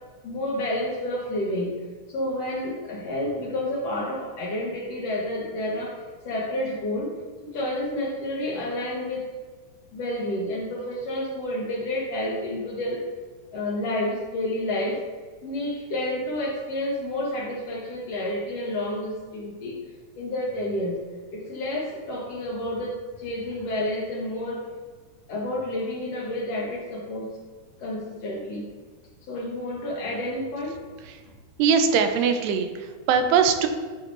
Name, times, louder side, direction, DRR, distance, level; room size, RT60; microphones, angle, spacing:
voice 1, 0.2-1.7 2.1-6.0 6.2-7.2 7.4-9.3 9.9-13.0 13.5-15.0 15.4-19.8 20.1-21.0 21.3-24.6 25.3-27.3 27.8-28.7 29.2-30.8, left 1 dB, 80° left, -4 dB, 1.4 m, -30 dB
voice 2, 31.6-33.7, right 6 dB, 85° right, 7 dB, 2.3 m, -21 dB
9.6 x 4.5 x 2.5 m, 1.4 s
omnidirectional pair, 4.0 m